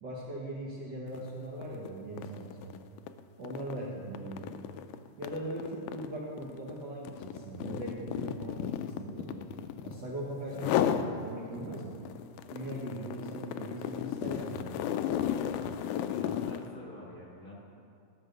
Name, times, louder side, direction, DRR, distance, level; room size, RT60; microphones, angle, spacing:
voice 1, 0.0-2.7 3.4-4.6 5.2-9.4 9.8-11.9 12.5-14.7, right 1 dB, 55° right, -4 dB, 1.3 m, -40 dB
sound 1, 1.1-1.3 1.6-10.1 10.5-11.1 11.5-16.7, left 10 dB, 80° left, 1.9 m, -34 dB
voice 2, 15.5-17.6, left 2 dB, 40° left, -5 dB, 1.3 m, -48 dB
14.0 x 6.0 x 6.7 m, 2.5 s
omnidirectional pair, 3.5 m